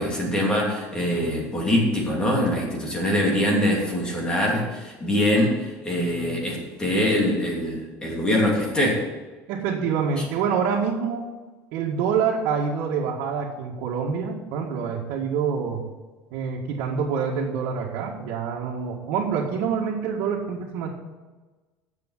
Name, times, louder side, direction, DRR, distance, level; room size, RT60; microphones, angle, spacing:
voice 1, 0.0-9.0 10.2-10.3, left 1 dB, 15° left, -2 dB, 2.8 m, -23 dB
voice 2, 9.5-11.3 11.7-15.8 16.3-20.9, right 6 dB, 75° right, -4 dB, 1.9 m, -26 dB
9.9 x 7.6 x 7.4 m, 1.3 s
cardioid pair, 170°, 6 cm